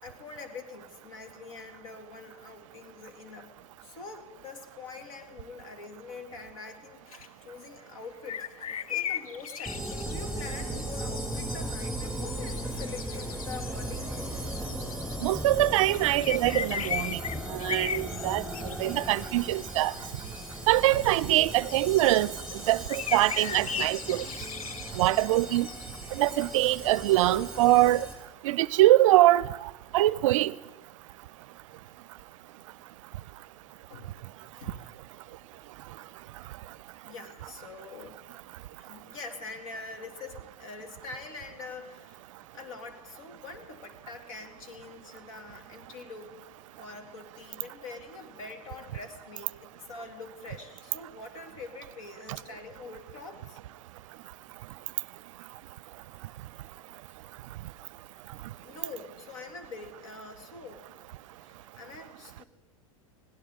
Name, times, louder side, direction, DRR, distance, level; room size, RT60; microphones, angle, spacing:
voice 1, 0.0-14.2 18.8-19.1 33.9-35.0 37.1-38.2 38.8-42.3 42.5-46.4 46.8-53.6 58.6-60.9 61.4-62.5, left 3 dB, 70° left, 2.3 m, -45 dB
sound 1, 7.1-7.3 8.3-15.5 15.8-19.3 19.6-19.7 20.0-26.5, left 8 dB, 85° left, 0.5 m, -38 dB
sound 2, 9.6-28.1, right 1 dB, ahead, 7.2 m, -37 dB
voice 2, 15.2-17.2 17.5-18.4 18.8-19.9 20.7-22.3 22.7-24.3 24.9-25.7 26.1-28.1 28.4-30.5, right 16 dB, 65° right, 0.5 m, -23 dB
21.5 x 17.0 x 3.7 m
hypercardioid pair, 100°, 18 cm